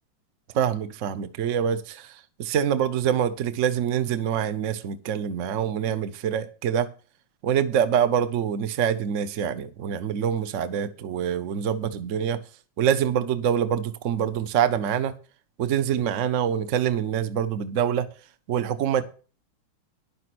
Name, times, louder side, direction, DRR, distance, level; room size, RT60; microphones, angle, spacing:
voice 1, 0.5-2.0 2.4-6.9 7.4-12.4 12.8-15.1 15.6-18.1 18.5-19.0, right 9 dB, 75° right, 0.7 m, -25 dB
10.5 x 6.8 x 6.0 m
omnidirectional pair, 2.3 m